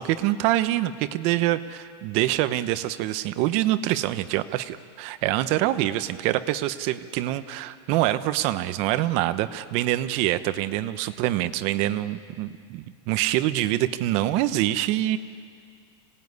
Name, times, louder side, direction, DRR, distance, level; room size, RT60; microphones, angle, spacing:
voice 1, 0.0-15.2, right 14 dB, 45° right, 13 dB, 0.8 m, -25 dB
26.5 x 18.0 x 9.5 m, 2.2 s
supercardioid pair, 155°, 15 cm